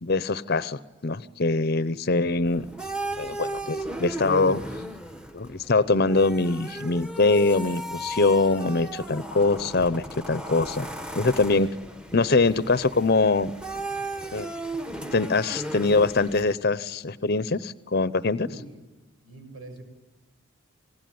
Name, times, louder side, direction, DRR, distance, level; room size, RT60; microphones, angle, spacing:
voice 1, 0.0-2.7 3.2-4.6 5.3-10.9 11.2-11.7 12.1-13.5 14.3-14.5 15.1-18.5, left 3 dB, 50° left, 16 dB, 0.8 m, -23 dB
sound 1, 2.5-16.5, right 1 dB, 5° right, 1.3 m, -36 dB
voice 2, 18.3-18.7 19.2-19.8, right 2 dB, 80° right, 6 dB, 7.3 m, -43 dB
27.0 x 19.5 x 9.4 m, 1.2 s
head